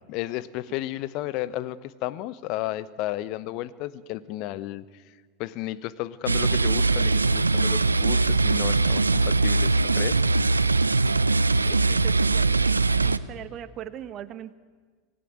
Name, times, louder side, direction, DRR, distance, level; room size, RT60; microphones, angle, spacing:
voice 1, 0.1-4.8 5.4-10.2, left 15 dB, 50° left, 17 dB, 0.9 m, -33 dB
sound 1, 6.3-13.2, right 3 dB, 90° right, 0.6 m, -21 dB
voice 2, 11.2-12.7 13.0-14.5, right 11 dB, 40° right, 13 dB, 1.2 m, -40 dB
25.5 x 16.5 x 9.4 m, 1.5 s
figure-of-eight pair, 85°, 0 cm